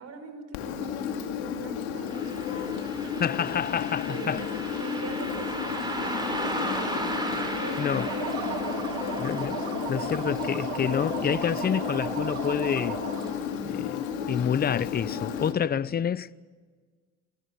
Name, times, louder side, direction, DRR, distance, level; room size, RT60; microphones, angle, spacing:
voice 1, 0.0-3.2 4.1-6.9 7.4-9.2, right 3 dB, 50° right, 5.1 m, -42 dB
Engine, 0.5-15.5, left 8 dB, 80° left, 2.4 m, -33 dB
Car passing by, 2.1-12.9 13.2-13.3 14.2-14.4 14.9-15.0 15.5-15.6, right 1 dB, 10° right, 6.6 m, -36 dB
voice 2, 3.2-4.4 7.8-8.1 9.2-13.0 13.6-16.3, left 8 dB, 30° left, 0.7 m, -28 dB
sound 1, 7.7-13.4, right 6 dB, 75° right, 4.0 m, -35 dB
27.0 x 19.0 x 8.5 m
hypercardioid pair, 60°, 33 cm